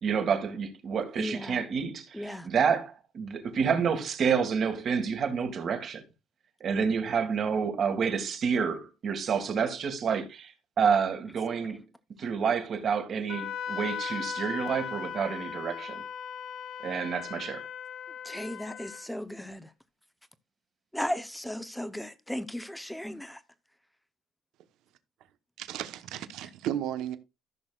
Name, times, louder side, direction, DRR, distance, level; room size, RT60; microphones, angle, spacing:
voice 1, 0.0-6.0 6.6-11.8 12.2-16.0 16.8-17.7, right 6 dB, 40° right, 1.9 m, -29 dB
voice 2, 1.2-1.6 2.1-2.5 18.2-19.7 20.9-23.4, left 1 dB, 5° left, 0.8 m, -36 dB
Wind instrument woodwind instrument, 13.3-19.1, left 8 dB, 50° left, 0.8 m, -38 dB
voice 3, 25.6-27.2, right 11 dB, 70° right, 1.0 m, -34 dB
14.5 x 6.4 x 2.4 m
cardioid pair, 135°, 0 cm